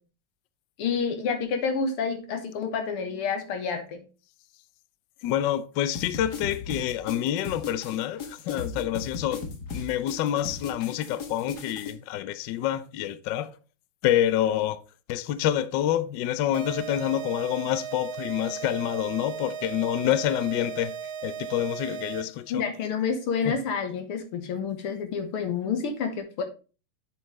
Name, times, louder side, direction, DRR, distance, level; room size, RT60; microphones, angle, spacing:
voice 1, 0.8-4.0 22.5-26.4, left 5 dB, 85° left, 2.3 m, -29 dB
voice 2, 5.2-9.4 9.7-13.6 14.0-14.8 15.1-21.0 21.2-22.6 23.5-23.6, left 11 dB, 70° left, 1.1 m, -27 dB
sound 1, 5.9-11.9, left 5 dB, 50° left, 1.6 m, -37 dB
sound 2, 16.5-22.5, right 7 dB, 60° right, 1.1 m, -37 dB
7.6 x 7.5 x 3.2 m
omnidirectional pair, 2.4 m